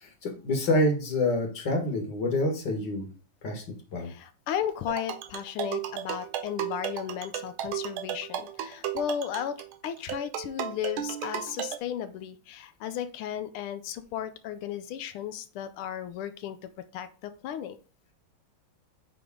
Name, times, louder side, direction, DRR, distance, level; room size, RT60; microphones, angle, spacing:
voice 1, 0.0-3.1 3.4-3.6 3.9-4.1, left 1 dB, 55° left, 1 dB, 2.3 m, -27 dB
voice 2, 4.0-16.6 16.9-17.8, left 10 dB, 85° left, 11 dB, 1.5 m, -35 dB
sound 1, 4.9-11.8, right 10 dB, 80° right, 1.5 m, -35 dB
8.5 x 3.6 x 3.7 m, 0.37 s
omnidirectional pair, 2.4 m